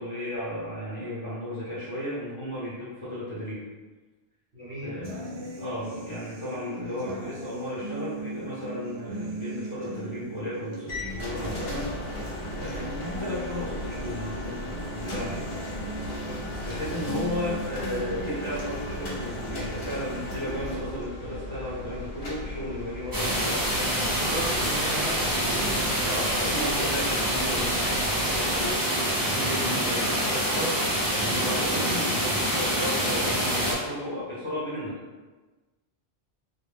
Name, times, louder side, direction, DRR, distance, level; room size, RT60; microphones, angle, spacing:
voice 1, 0.0-3.6 4.8-11.9 12.6-15.5 15.8-16.0 16.3-23.7 25.4-25.6 26.0-30.7 31.2-35.0, left 1 dB, 30° left, -10 dB, 0.7 m, -34 dB
voice 2, 4.5-4.9 16.2-16.4 24.1-25.3 26.2-26.3, equal, 50° right, -8 dB, 1.0 m, -36 dB
sound 1, 5.0-21.0, right 3 dB, 80° right, 0.9 m, -39 dB
sound 2, 10.9-28.7, left 1 dB, 70° left, 0.9 m, -36 dB
sound 3, 23.1-33.7, equal, 30° right, 0.4 m, -26 dB
2.3 x 2.1 x 3.3 m, 1.3 s
omnidirectional pair, 1.1 m